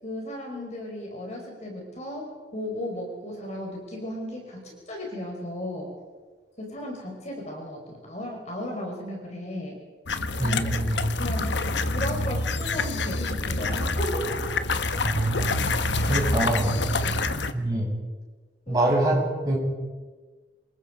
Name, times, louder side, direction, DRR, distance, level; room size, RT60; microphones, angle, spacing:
voice 1, 0.0-5.9 6.6-9.8 10.4-10.6 11.2-11.6 11.9-14.7 16.9-17.2 18.7-18.9, left 1 dB, 40° left, 0 dB, 5.0 m, -35 dB
sound 1, 10.1-17.5, left 2 dB, 75° left, 1.1 m, -27 dB
voice 2, 10.4-11.0 15.0-15.6 16.0-16.7 17.5-17.9 18.7-19.6, right 1 dB, 20° right, -4 dB, 7.7 m, -25 dB
27.5 x 21.0 x 5.1 m, 1.4 s
head